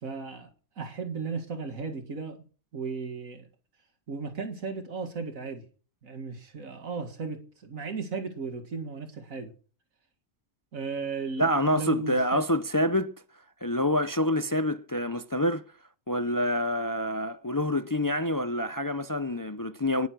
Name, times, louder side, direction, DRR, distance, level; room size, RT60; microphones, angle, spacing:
voice 1, 0.0-0.5 0.8-2.4 2.7-3.5 4.1-5.6 6.0-9.5 10.7-12.4, right 4 dB, 80° right, 2.3 m, -35 dB
voice 2, 11.4-13.1 13.6-15.6 16.1-20.1, left 1 dB, 35° left, 0.3 m, -27 dB
19.5 x 7.1 x 6.1 m
omnidirectional pair, 1.4 m